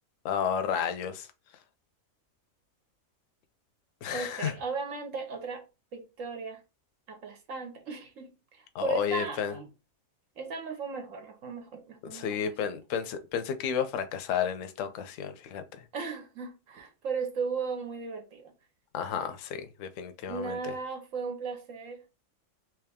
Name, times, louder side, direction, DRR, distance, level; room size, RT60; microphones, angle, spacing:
voice 1, 0.2-1.3 4.0-4.5 8.7-9.5 12.0-15.8 18.9-20.6, left 8 dB, 70° left, 1.0 m, -32 dB
voice 2, 4.1-5.6 5.9-6.6 7.1-9.7 10.4-12.5 15.9-18.5 20.3-22.0, right 5 dB, 75° right, 1.3 m, -36 dB
3.4 x 3.1 x 3.5 m
omnidirectional pair, 1.4 m